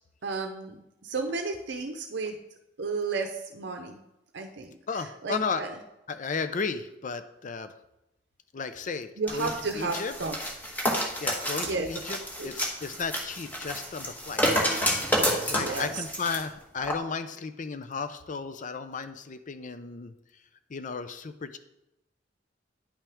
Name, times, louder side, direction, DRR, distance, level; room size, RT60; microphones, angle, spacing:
voice 1, 0.2-2.4 2.8-4.0 4.3-5.7 9.2-10.4 11.6-12.0 12.4-12.5 15.6-16.0, right 4 dB, 70° right, 4 dB, 0.7 m, -33 dB
voice 2, 4.9-5.6 6.1-7.7 8.5-10.1 11.2-12.2 12.4-14.4 15.5-20.1 20.7-21.6, left 5 dB, 45° left, 11 dB, 0.5 m, -34 dB
sound 1, 9.3-16.4 16.8-16.9, equal, 10° left, 1.2 m, -29 dB
9.9 x 5.7 x 3.5 m, 0.91 s
head